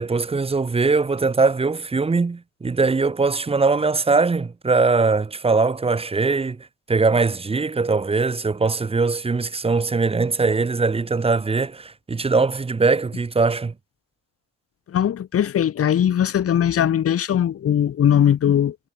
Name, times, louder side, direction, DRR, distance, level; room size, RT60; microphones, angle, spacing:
voice 1, 0.0-13.7, right 4 dB, 20° right, 0.9 m, -21 dB
voice 2, 14.9-18.8, left 9 dB, 50° left, 1.1 m, -20 dB
cardioid pair, 90°, 30 cm